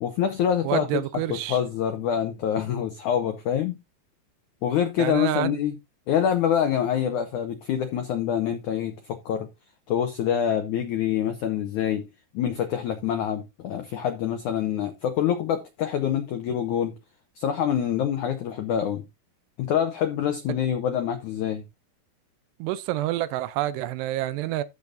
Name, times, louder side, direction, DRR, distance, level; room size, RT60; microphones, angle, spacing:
voice 1, 0.0-1.0 1.3-3.8 4.6-5.8 6.1-9.5 9.9-12.1 12.3-16.9 17.3-19.0 19.6-21.6, left 9 dB, 90° left, 1.7 m, -26 dB
voice 2, 0.6-1.6 5.0-5.5 22.6-24.6, right 14 dB, 85° right, 2.8 m, -28 dB
14.0 x 6.8 x 2.7 m
omnidirectional pair, 4.8 m